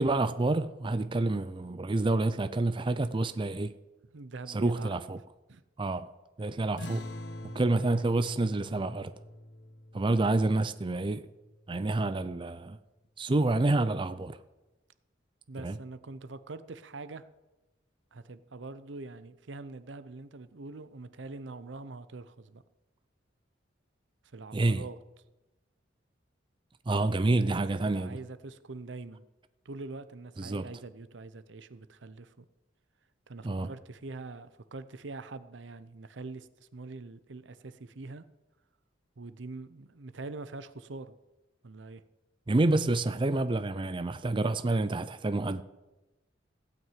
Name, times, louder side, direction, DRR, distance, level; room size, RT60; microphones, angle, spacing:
voice 1, 0.0-3.7 4.5-5.2 5.8-6.1 6.4-7.1 7.4-9.1 9.9-11.3 11.7-12.8 13.2-14.4 15.6-15.8 24.5-24.8 26.9-28.2 30.4-30.7 33.4-33.7 42.5-45.6, right 2 dB, 25° right, 0.5 m, -28 dB
voice 2, 4.1-4.9 5.5-5.6 15.5-17.2 18.1-22.6 24.3-25.0 27.8-29.2 29.6-32.4 33.3-38.2 39.2-41.1 41.6-42.0, right 3 dB, 75° right, 0.7 m, -44 dB
sound 1, 6.8-11.8, left 1 dB, 65° left, 1.0 m, -45 dB
16.0 x 6.0 x 9.1 m
head